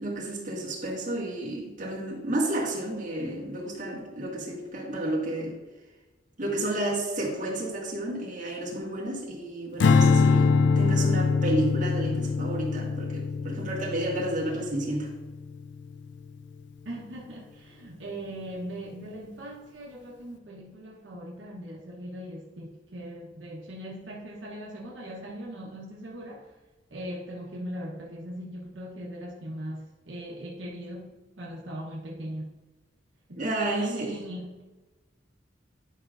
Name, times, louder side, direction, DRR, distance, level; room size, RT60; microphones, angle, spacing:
voice 1, 0.0-5.6 6.4-15.1 33.4-34.2, right 1 dB, 40° right, -4 dB, 1.9 m, -31 dB
Strum, 9.8-16.2, left 4 dB, 65° left, 0.3 m, -24 dB
voice 2, 16.8-26.5 26.9-32.5 33.3-34.6, right 1 dB, 75° right, -4 dB, 1.1 m, -39 dB
10.5 x 5.0 x 2.5 m, 1.2 s
head